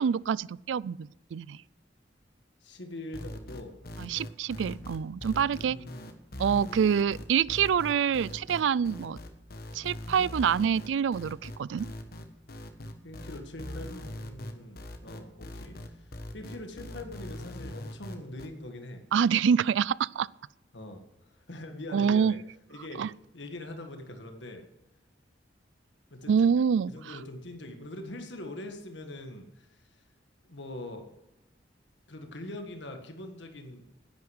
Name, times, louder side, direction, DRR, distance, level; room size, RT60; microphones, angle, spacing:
voice 1, 0.0-1.6 4.0-5.8 6.4-9.2 9.7-11.9 19.1-20.3 21.9-22.3 23.0-23.1 26.3-26.9, right 7 dB, 85° right, 0.3 m, -26 dB
voice 2, 2.6-3.7 5.7-6.1 13.0-19.0 20.7-21.0 21.4-22.4 22.7-24.6 26.1-26.5 26.9-30.0 30.4-31.1 32.1-34.0, left 1 dB, 75° left, 1.8 m, -43 dB
sound 1, 3.1-18.5, left 1 dB, 55° left, 1.4 m, -41 dB
10.5 x 9.5 x 7.9 m
head